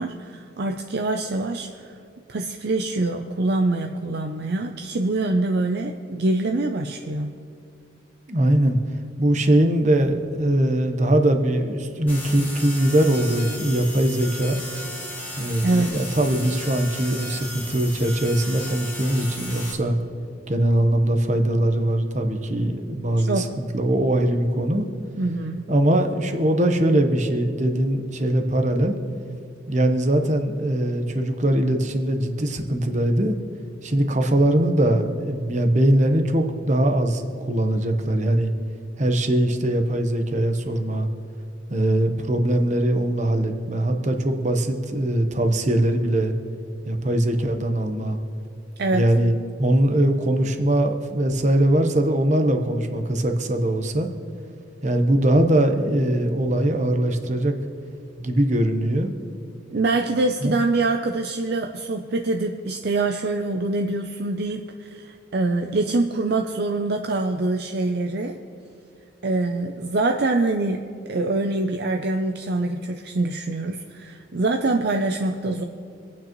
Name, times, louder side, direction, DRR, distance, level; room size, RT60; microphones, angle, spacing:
voice 1, 0.0-2.0 2.3-7.4 15.6-15.9 23.2-23.5 25.2-25.6 48.8-49.1 59.7-68.4 69.2-70.8 71.1-75.6, right 2 dB, 55° right, 4 dB, 0.5 m, -24 dB
voice 2, 8.3-8.8 9.2-14.6 15.4-20.0 20.5-23.5 23.7-24.8 25.7-29.0 29.7-33.3 33.8-38.5 39.0-41.1 41.7-46.3 46.9-48.2 48.9-54.1 54.8-57.6 58.2-59.1 60.4-60.6, right 1 dB, 35° right, 5 dB, 1.0 m, -21 dB
sound 1, 12.1-19.7, left 1 dB, 10° left, 1.9 m, -35 dB
26.0 x 9.1 x 3.0 m, 2.5 s
head